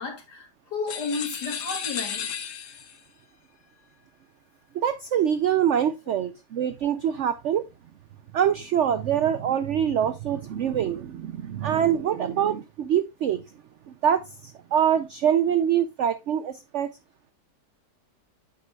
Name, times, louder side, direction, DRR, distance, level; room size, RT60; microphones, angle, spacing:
voice 1, 0.0-2.3, left 4 dB, 75° left, 3.1 m, -33 dB
sound 1, 0.9-3.0, left 8 dB, 55° left, 1.1 m, -33 dB
voice 2, 4.7-7.7 8.3-13.4 13.9-16.9, right 9 dB, 75° right, 0.6 m, -24 dB
8.9 x 8.1 x 2.3 m
omnidirectional pair, 1.8 m